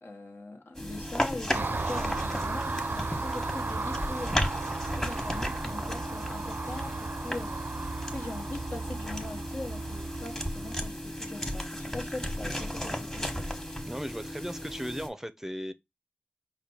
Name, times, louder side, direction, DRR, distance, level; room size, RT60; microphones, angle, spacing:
voice 1, 0.0-4.5 4.9-7.6 8.1-13.3, left 2 dB, 75° left, 1.1 m, -41 dB
sound 1, 0.7-15.1, equal, 15° left, 1.1 m, -35 dB
Car passing by, 1.5-10.9, right 3 dB, 65° right, 0.4 m, -35 dB
voice 2, 13.9-15.7, equal, 10° right, 0.5 m, -36 dB
5.0 x 2.2 x 4.2 m
wide cardioid pair, 45°, 4 cm